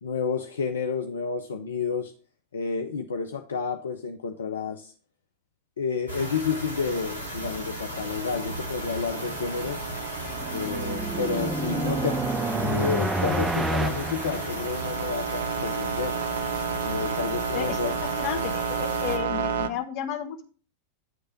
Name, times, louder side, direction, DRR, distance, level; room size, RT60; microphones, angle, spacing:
voice 1, 0.0-2.1 2.5-4.9 5.8-9.9 10.5-12.2 12.6-16.2 16.8-17.9, left 5 dB, 70° left, 6 dB, 0.5 m, -30 dB
sound 1, 6.1-19.2, right 1 dB, 90° left, 1.5 m, -36 dB
sound 2, 6.9-19.7, right 7 dB, 60° right, 0.5 m, -33 dB
sound 3, 10.1-15.1, right 1 dB, 10° right, 0.5 m, -29 dB
voice 2, 17.5-20.4, left 9 dB, 40° left, 5 dB, 1.1 m, -33 dB
9.0 x 3.2 x 5.8 m, 0.41 s
figure-of-eight pair, 90°, 0 cm